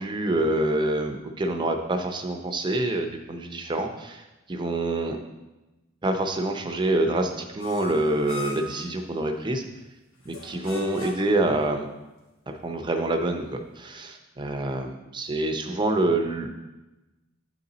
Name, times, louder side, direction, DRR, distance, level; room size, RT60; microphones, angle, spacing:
voice 1, 0.0-5.2 6.0-9.6 10.3-11.9 12.5-16.5, right 2 dB, 20° right, 4 dB, 0.6 m, -26 dB
sound 1, 7.6-8.8 10.2-11.4, left 3 dB, 75° left, 2.1 m, -38 dB
9.0 x 4.1 x 3.9 m, 1.0 s
head